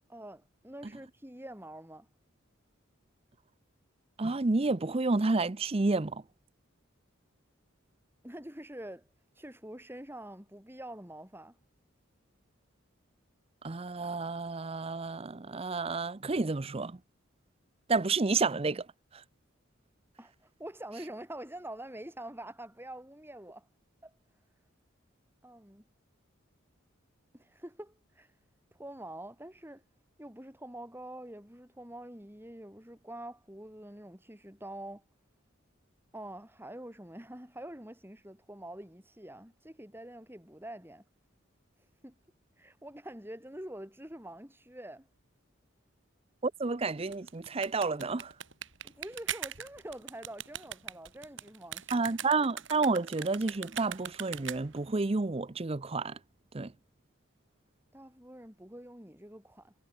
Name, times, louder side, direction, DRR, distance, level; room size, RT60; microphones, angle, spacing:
voice 1, 0.1-2.1 8.2-9.1 9.3-11.6 20.2-23.7 24.0-24.1 25.4-25.8 27.3-28.4 28.7-29.8 30.2-35.0 36.1-41.0 41.8-42.1 42.6-45.1 48.8-52.0 57.9-59.7, right 1 dB, 10° right, 4.8 m, -46 dB
voice 2, 4.2-6.2 13.6-17.0 17.9-18.9 46.4-48.3 51.9-56.2 56.5-56.7, right 3 dB, 30° right, 0.6 m, -30 dB
sound 1, 47.0-54.9, right 9 dB, 65° right, 6.9 m, -41 dB
head